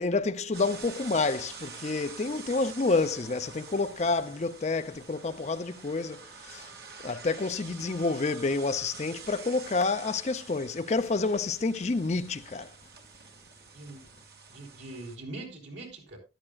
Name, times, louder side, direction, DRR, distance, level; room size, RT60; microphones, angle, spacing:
voice 1, 0.0-6.7 7.0-12.7, left 3 dB, 40° left, 0.5 m, -29 dB
sound 1, 0.5-15.2, right 5 dB, 55° right, 1.9 m, -47 dB
voice 2, 14.5-16.2, right 2 dB, 80° right, 3.9 m, -42 dB
13.5 x 11.0 x 2.3 m
head